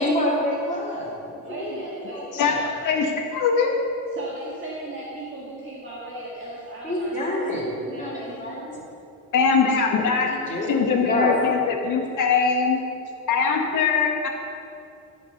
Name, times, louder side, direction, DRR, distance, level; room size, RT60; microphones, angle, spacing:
voice 1, 0.0-2.5 6.8-8.8 10.3-11.4 12.0-12.1, left 1 dB, 25° left, -5 dB, 3.0 m, -28 dB
voice 2, 1.5-2.7 4.1-7.3 7.9-8.8 10.6-11.1 12.3-12.4, right 2 dB, 40° right, -7 dB, 2.1 m, -37 dB
voice 3, 3.3-3.7 9.3-10.3 10.7-12.8 13.3-14.3, left 5 dB, 75° left, 2 dB, 1.8 m, -21 dB
15.5 x 5.2 x 6.8 m, 2.6 s
cardioid pair, 125°, 31 cm